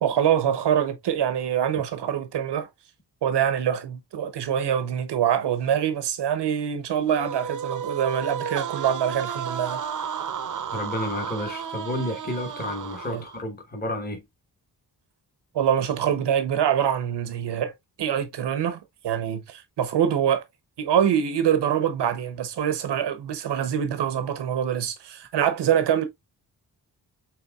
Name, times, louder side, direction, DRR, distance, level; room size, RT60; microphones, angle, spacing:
voice 1, 0.0-2.7 3.2-9.8 13.1-13.2 15.5-17.7 18.0-20.4 20.8-26.0, right 9 dB, 85° right, 0.8 m, -24 dB
sound 1, 7.1-13.4, right 7 dB, 50° right, 0.6 m, -33 dB
voice 2, 10.7-14.2, left 1 dB, 25° left, 1.1 m, -31 dB
5.6 x 3.6 x 2.3 m
wide cardioid pair, 135°, 40 cm